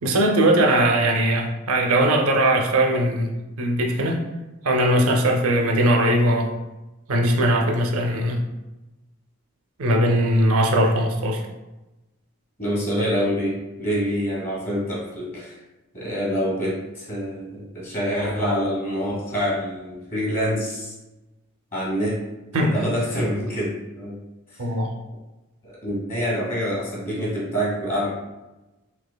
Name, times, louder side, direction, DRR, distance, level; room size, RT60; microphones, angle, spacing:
voice 1, 0.0-3.3 3.6-4.2 4.6-6.5 7.1-8.4 9.8-11.4 22.5-22.8 24.6-24.9, right 1 dB, 75° right, 2 dB, 0.5 m, -20 dB
voice 2, 12.6-15.5 15.9-20.9 21.7-22.2 22.6-24.2 24.5-24.7 25.6-28.1, equal, 40° left, -6 dB, 1.4 m, -26 dB
4.0 x 2.8 x 2.2 m, 1.0 s
head